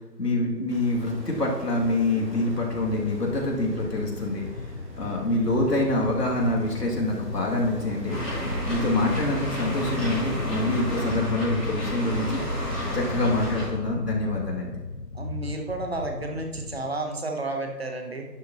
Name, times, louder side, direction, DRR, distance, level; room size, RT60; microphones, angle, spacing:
voice 1, 0.2-4.5 4.9-8.2 8.6-12.6 12.9-14.8, left 2 dB, 70° left, -2 dB, 2.6 m, -26 dB
sound 1, 0.7-11.1, equal, 85° right, 2.9 m, -42 dB
sound 2, 2.7-16.9, left 3 dB, 50° left, 0.4 m, -38 dB
sound 3, 8.1-13.7, equal, 5° left, 1.1 m, -31 dB
voice 2, 15.1-18.3, right 2 dB, 40° right, 3 dB, 1.1 m, -31 dB
12.0 x 8.4 x 3.0 m, 1.2 s
figure-of-eight pair, 170°, 49 cm